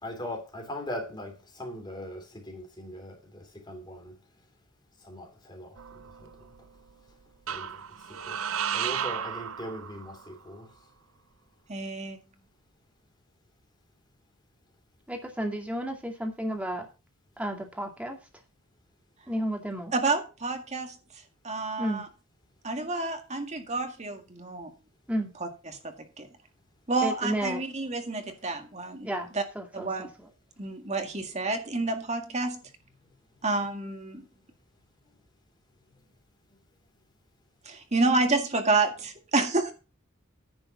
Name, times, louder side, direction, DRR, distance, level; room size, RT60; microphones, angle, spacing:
voice 1, 0.0-4.2 5.0-5.8 6.2-6.3 7.5-7.8 8.3-10.7, left 1 dB, 20° left, 3.2 m, -40 dB
sound 1, 5.8-6.6 7.5-10.3, right 8 dB, 70° right, 0.6 m, -34 dB
voice 2, 11.7-12.2 19.9-21.0 21.4-22.1 22.6-24.7 25.4-26.3 26.9-29.1 29.3-29.4 29.7-30.1 30.6-32.6 33.4-34.2 37.7-39.7, right 3 dB, 30° right, 1.9 m, -29 dB
voice 3, 15.1-16.9 17.4-18.2 19.3-19.9 21.8-22.0 25.1-25.3 27.0-27.6 29.0-30.1, right 1 dB, 5° right, 2.2 m, -32 dB
10.5 x 5.1 x 7.1 m
head